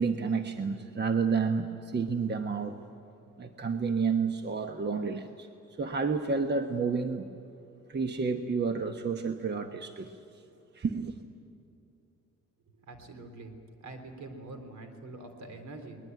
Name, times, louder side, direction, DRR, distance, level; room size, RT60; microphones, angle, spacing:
voice 1, 0.0-2.8 3.4-5.5 5.8-7.3 7.9-10.1 10.7-11.2, right 5 dB, 35° right, 7 dB, 1.1 m, -30 dB
voice 2, 12.9-13.5 13.8-16.0, right 2 dB, 70° right, 7 dB, 3.4 m, -44 dB
22.0 x 20.5 x 9.3 m, 2.7 s
cardioid pair, 90°, 30 cm